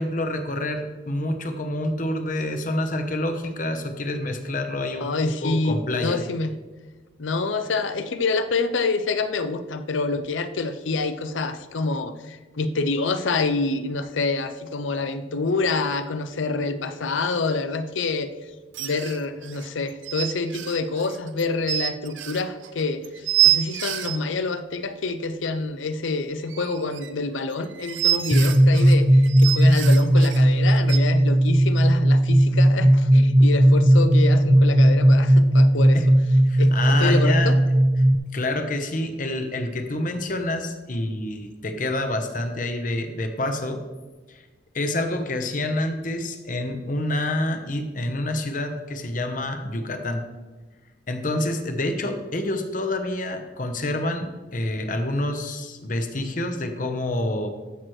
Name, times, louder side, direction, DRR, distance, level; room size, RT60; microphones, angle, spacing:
voice 1, 0.0-6.2 35.9-36.1 36.4-37.5 38.3-43.8 44.3-44.4 44.7-50.2 51.1-57.5, left 1 dB, 45° left, 6 dB, 0.9 m, -27 dB
voice 2, 5.0-6.6 7.2-18.5 18.8-36.0 36.6-37.5, left 3 dB, 90° left, 10 dB, 0.6 m, -27 dB
sound 1, 15.6-15.7 15.9-16.0 18.7-24.2 26.4-31.0, right 13 dB, 85° right, 0.7 m, -27 dB
sound 2, 28.3-38.1, right 1 dB, 10° right, 0.3 m, -16 dB
14.0 x 6.1 x 3.2 m, 1.2 s
head